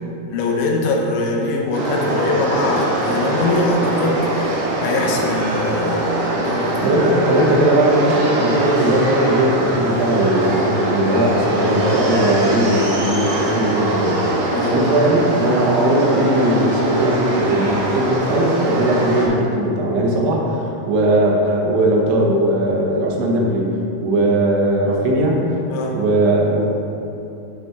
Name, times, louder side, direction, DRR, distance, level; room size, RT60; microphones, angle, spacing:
voice 1, 0.3-6.9 14.5-14.8 25.7-26.0, left 2 dB, 80° left, -1 dB, 3.2 m, -22 dB
sound 1, 1.7-19.3, right 1 dB, 65° right, 1.9 m, -22 dB
voice 2, 6.8-14.4 14.7-23.7 24.0-25.4 25.9-26.6, right 1 dB, 85° right, -2 dB, 3.4 m, -18 dB
11.0 x 4.2 x 3.5 m, 2.8 s
omnidirectional pair, 5.3 m